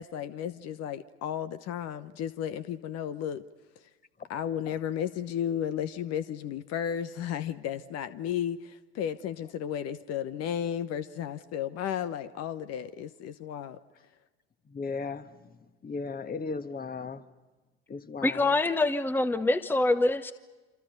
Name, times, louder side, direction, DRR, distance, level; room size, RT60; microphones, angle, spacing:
voice 1, 0.0-3.4 3.8-3.9 4.3-13.8, left 9 dB, 50° left, 1.1 m, -33 dB
voice 2, 14.7-15.3 15.8-17.2 17.9-18.5, left 4 dB, 30° left, 1.7 m, -36 dB
voice 3, 18.2-20.3, left 2 dB, 5° left, 1.0 m, -25 dB
28.0 x 27.0 x 5.4 m
hypercardioid pair, 70°, 31 cm